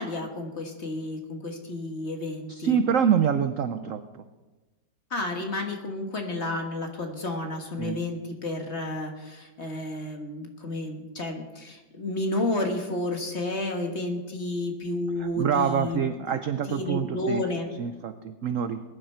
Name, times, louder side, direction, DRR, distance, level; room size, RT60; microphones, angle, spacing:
voice 1, 0.0-2.8 5.1-16.4 16.7-17.7, left 2 dB, 40° left, 3 dB, 1.6 m, -31 dB
voice 2, 2.5-4.2 7.8-8.0 15.2-17.4 17.8-18.8, right 7 dB, 75° right, 10 dB, 0.7 m, -26 dB
21.0 x 10.0 x 4.4 m, 1.2 s
omnidirectional pair, 2.0 m